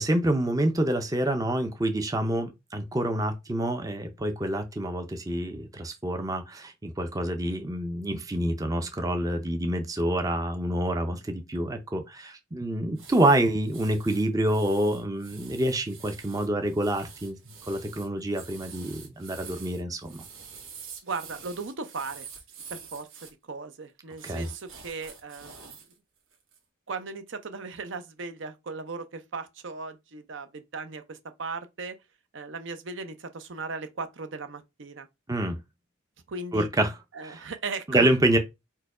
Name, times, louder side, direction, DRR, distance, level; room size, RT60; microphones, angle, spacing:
voice 1, 0.0-17.4 17.7-20.2 24.2-24.5 35.3-35.6 36.5-36.9 37.2-37.4 37.9-38.4, right 1 dB, 15° right, 0.5 m, -27 dB
sound 1, 13.0-23.3 24.1-25.9 26.3-26.6, right 6 dB, 80° right, 1.4 m, -47 dB
voice 2, 21.0-22.3 22.7-25.7 26.9-32.0 32.3-35.1 36.3-36.7 37.1-38.1, right 4 dB, 65° right, 0.6 m, -37 dB
4.5 x 2.2 x 4.7 m
head